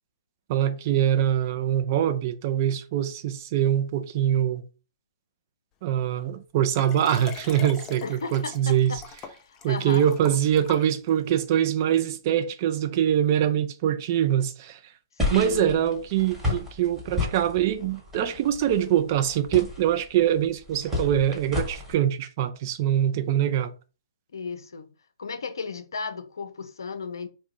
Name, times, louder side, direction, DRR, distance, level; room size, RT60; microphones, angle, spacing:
voice 1, 0.5-4.6 5.8-8.9 9.6-14.8 15.3-23.7, right 10 dB, 40° right, 0.4 m, -24 dB
Liquid, 6.7-11.3 12.0-12.1, left 6 dB, 25° left, 0.4 m, -42 dB
voice 2, 8.0-9.0 9.4-10.1 15.2-15.9 24.3-24.9 25.2-27.3, left 4 dB, 70° left, 0.5 m, -35 dB
sound 1, 15.2-21.9, left 2 dB, 10° right, 1.2 m, -32 dB
2.7 x 2.1 x 3.5 m
figure-of-eight pair, 125°, 2 cm